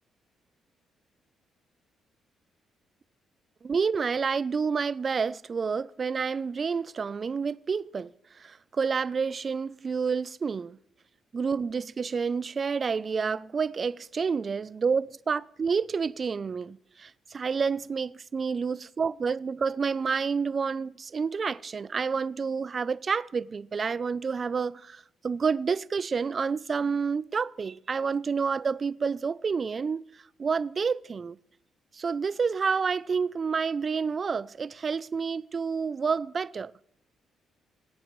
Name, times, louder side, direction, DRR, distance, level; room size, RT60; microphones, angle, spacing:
voice 1, 3.6-10.8 11.3-31.4 31.9-36.7, right 5 dB, 40° right, 0.4 m, -29 dB
21.0 x 9.0 x 3.1 m
cardioid pair, 90°, 0 cm